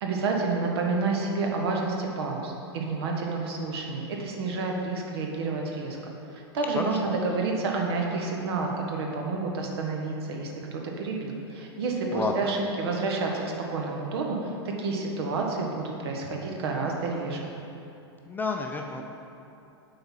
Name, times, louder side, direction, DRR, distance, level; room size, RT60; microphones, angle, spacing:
voice 1, 0.0-6.0 6.3-13.4 13.7-14.4 14.6-17.5, right 3 dB, 65° right, 0 dB, 1.2 m, -29 dB
voice 2, 6.8-7.2 12.1-12.5 18.2-19.1, left 3 dB, 15° left, 2 dB, 0.5 m, -31 dB
7.0 x 4.0 x 5.8 m, 2.8 s
hypercardioid pair, 105°, 14 cm